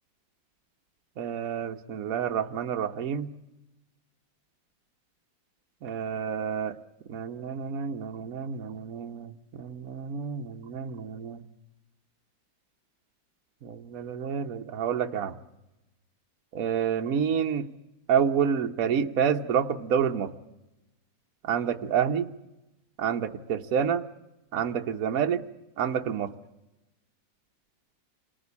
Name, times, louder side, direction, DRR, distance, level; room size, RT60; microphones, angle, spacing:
voice 1, 1.2-3.3 5.8-6.7 7.1-11.4 13.6-15.4 16.5-17.7 18.1-20.3 21.4-22.3 23.0-24.0 24.5-25.4 25.8-26.3, right 7 dB, 55° right, 6 dB, 1.3 m, -28 dB
26.5 x 19.5 x 8.3 m, 0.99 s
omnidirectional pair, 2.0 m